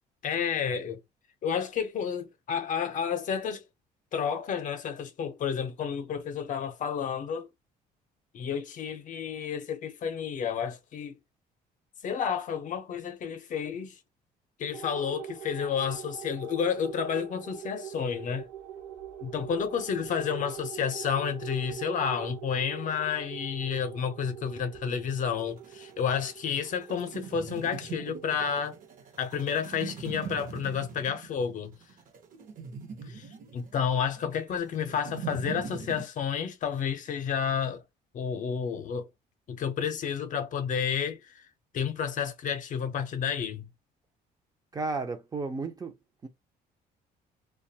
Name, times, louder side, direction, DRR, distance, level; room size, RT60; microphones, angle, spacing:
voice 1, 0.2-1.0 1.4-3.6 4.1-7.5 8.3-11.1 12.0-14.0 14.6-18.5 19.2-28.8 29.2-31.7 33.0-37.8 38.1-39.1 39.5-41.5 41.7-43.7, left 7 dB, 50° left, 0.6 m, -31 dB
sound 1, 14.7-29.5, right 10 dB, 75° right, 1.1 m, -43 dB
sound 2, 25.4-36.1, right 6 dB, 55° right, 0.8 m, -42 dB
voice 2, 44.7-46.0 46.2-46.3, right 3 dB, 20° right, 0.5 m, -33 dB
2.5 x 2.3 x 2.7 m
cardioid pair, 110°, 17 cm